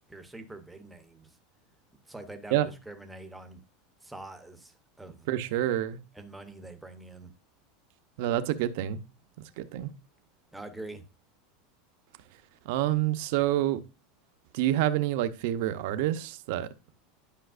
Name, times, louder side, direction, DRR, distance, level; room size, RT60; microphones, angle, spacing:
voice 1, 0.0-1.4 2.1-2.6 2.9-3.6 4.0-5.3 6.1-7.3 10.5-11.0, right 2 dB, 5° right, 0.8 m, -45 dB
voice 2, 5.3-6.0 8.2-9.0 9.4-9.9 12.6-13.8 14.5-16.7, right 13 dB, 50° right, 0.7 m, -28 dB
10.0 x 5.8 x 2.5 m
supercardioid pair, 180°, 0 cm